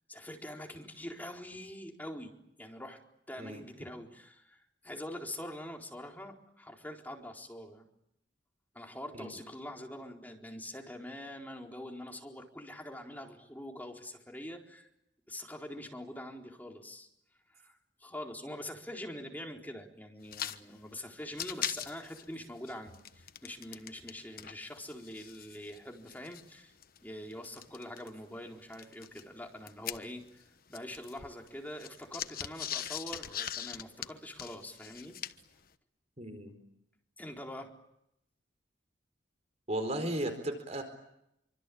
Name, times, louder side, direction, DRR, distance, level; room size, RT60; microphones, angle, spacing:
voice 1, 0.1-2.3 2.6-3.0 3.3-7.9 8.7-14.9 15.3-17.1 17.5-26.7 27.0-30.4 30.7-35.2 37.2-37.7, left 1 dB, 10° left, 1 dB, 4.2 m, -44 dB
voice 2, 3.4-3.9 9.1-9.3 36.2-36.5 39.7-40.8, right 1 dB, 35° right, 7 dB, 4.4 m, -35 dB
sound 1, 20.2-20.6 20.9-21.0 21.3-24.1 24.4-28.1 28.7-30.4 30.7-35.5, left 10 dB, 50° left, 1.2 m, -41 dB
27.5 x 25.5 x 8.7 m, 0.78 s
head